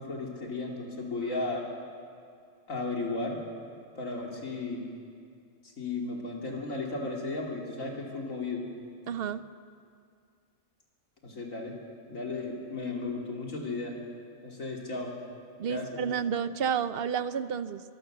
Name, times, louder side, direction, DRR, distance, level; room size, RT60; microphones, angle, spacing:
voice 1, 0.0-1.6 2.7-3.4 3.9-4.8 5.8-8.6 11.2-11.7 12.1-13.9 14.4-15.1 15.7-16.1, left 3 dB, 80° left, -1 dB, 3.2 m, -34 dB
voice 2, 9.1-9.5 15.6-17.8, right 7 dB, 55° right, 13 dB, 0.8 m, -30 dB
24.0 x 22.0 x 6.6 m, 2.3 s
omnidirectional pair, 1.4 m